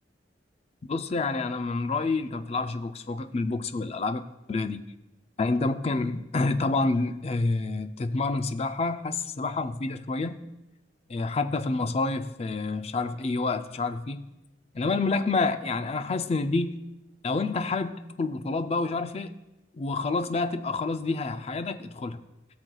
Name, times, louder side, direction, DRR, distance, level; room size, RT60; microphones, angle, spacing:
voice 1, 0.9-4.9 5.4-10.4 11.1-14.2 14.7-16.8 17.2-19.3 19.8-22.2, left 3 dB, 35° left, 0.4 m, -28 dB
17.0 x 6.5 x 2.3 m
head